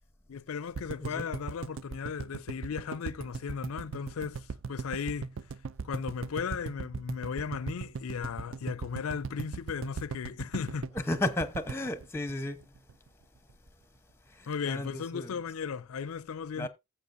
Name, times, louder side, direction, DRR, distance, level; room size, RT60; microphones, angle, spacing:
voice 1, 0.3-5.3 5.8-10.9 14.5-16.7, left 6 dB, 75° left, 0.4 m, -36 dB
sound 1, 0.7-12.9 13.2-13.3 13.5-13.6, right 5 dB, 60° right, 0.4 m, -38 dB
voice 2, 10.9-12.6 14.3-15.4 16.6-16.7, left 2 dB, 10° left, 0.8 m, -34 dB
14.5 x 7.5 x 2.6 m
head